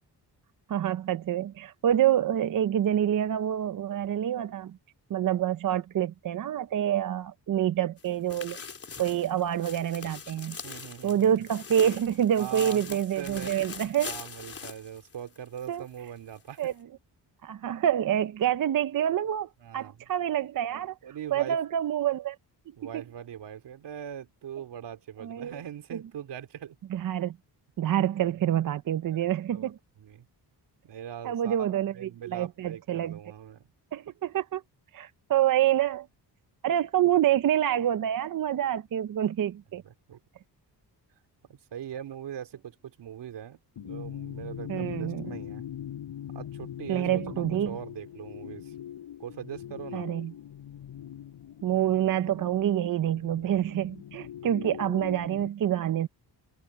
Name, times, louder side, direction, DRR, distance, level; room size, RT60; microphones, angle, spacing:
voice 1, 0.7-4.8 5.1-8.6 9.0-10.6 11.0-14.1 15.7-15.8 16.6-16.7 17.4-21.0 21.3-22.4 25.2-25.6 25.9-26.0 26.9-27.4 27.8-29.8 31.2-33.2 33.9-34.6 34.9-36.1 36.6-39.8 44.7-45.3 46.9-47.8 49.9-50.3 51.6-56.1, right 11 dB, 50° right, 0.6 m, -27 dB
sound 1, 8.0-15.7 16.0-16.1 16.6-16.7, left 5 dB, 35° left, 3.9 m, -42 dB
voice 2, 10.6-11.4 12.4-13.7 14.0-16.7 19.6-20.0 21.0-21.6 22.8-26.8 28.2-28.6 29.1-29.2 29.5-29.7 30.0-30.3 30.8-33.7 39.8-40.2 41.5-45.6 46.3-48.7 49.2-50.1, right 9 dB, 75° right, 3.2 m, -41 dB
sound 2, 43.8-55.5, left 10 dB, 85° left, 6.5 m, -41 dB
wide cardioid pair, 175°, 42 cm